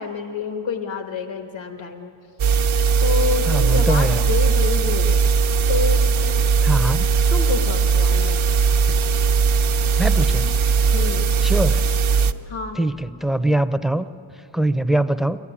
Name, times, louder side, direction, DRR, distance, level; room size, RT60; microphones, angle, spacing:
voice 1, 0.0-2.1 2.6-2.7 3.0-5.2 5.7-6.3 6.6-6.7 7.3-8.6 10.9-11.3 12.5-12.8, left 5 dB, 70° left, 5 dB, 1.5 m, -28 dB
sound 1, 2.4-12.3, right 5 dB, 75° right, 0.8 m, -18 dB
voice 2, 3.5-4.2 6.6-7.1 10.0-10.5 11.4-11.8 12.8-14.1 14.5-15.4, right 1 dB, ahead, 12 dB, 0.6 m, -22 dB
23.0 x 16.0 x 10.0 m, 2.6 s
wide cardioid pair, 100°, 48 cm